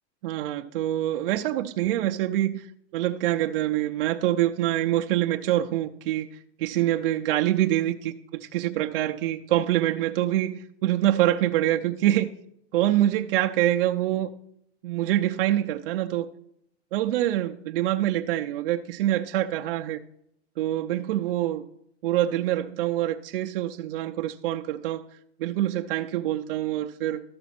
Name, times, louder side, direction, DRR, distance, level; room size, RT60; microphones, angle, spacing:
voice 1, 0.2-2.7 2.9-6.3 6.6-12.3 12.7-14.3 14.8-16.3 16.9-20.0 20.6-21.6 22.0-25.1 25.4-27.2, right 13 dB, 55° right, 0.5 m, -25 dB
13.0 x 6.1 x 5.8 m
supercardioid pair, 175°, 34 cm